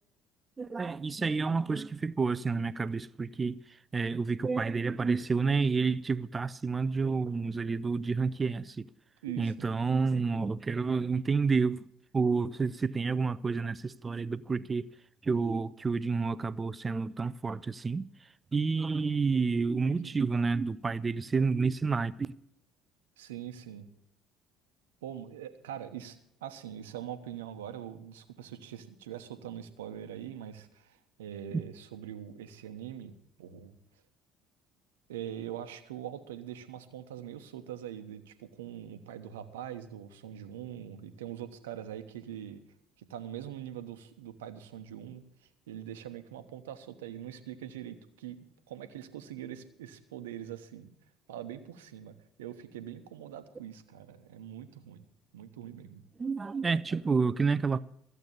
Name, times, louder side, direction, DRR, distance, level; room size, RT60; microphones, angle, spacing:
voice 1, 0.6-8.9 9.4-11.9 12.1-14.9 15.2-18.1 18.5-22.3 31.5-31.6 56.2-57.8, right 4 dB, 25° right, 0.5 m, -29 dB
voice 2, 9.2-9.7 19.8-20.2 23.2-23.9 25.0-33.8 35.1-42.7 43.0-50.9 51.3-55.1 55.3-56.0, right 10 dB, 80° right, 1.0 m, -43 dB
14.5 x 8.0 x 7.1 m
hypercardioid pair, 55°, 0 cm